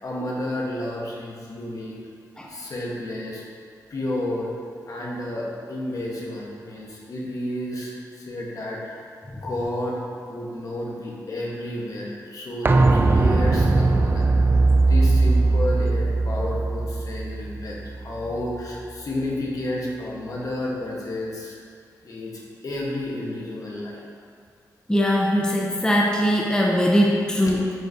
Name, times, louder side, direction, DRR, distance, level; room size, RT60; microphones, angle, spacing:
voice 1, 0.0-2.0 2.5-3.4 3.9-4.5 4.9-9.0 9.3-21.6 22.0-22.3 22.6-24.0, left 1 dB, 55° left, -4 dB, 1.2 m, -31 dB
sound 1, 12.6-18.3 18.6-18.7, right 3 dB, 30° right, 0.4 m, -19 dB
voice 2, 24.9-27.7, equal, 10° left, -2 dB, 0.6 m, -21 dB
9.3 x 3.9 x 2.7 m, 2.2 s
cardioid pair, 80°, 7 cm